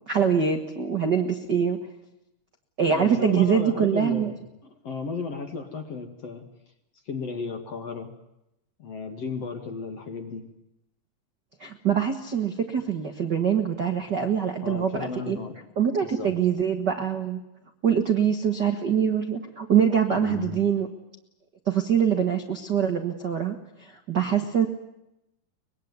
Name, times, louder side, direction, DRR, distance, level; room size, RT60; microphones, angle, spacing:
voice 1, 0.1-1.8 2.8-4.3 11.6-15.4 15.8-17.4 17.8-20.9 21.6-24.7, right 7 dB, 50° right, 5 dB, 1.3 m, -24 dB
voice 2, 2.9-4.3 4.8-6.5 7.1-8.1 8.8-10.4 14.6-15.6 16.0-16.6 20.1-20.6, left 4 dB, 45° left, 6 dB, 2.7 m, -34 dB
24.0 x 21.5 x 9.6 m, 0.87 s
omnidirectional pair, 4.6 m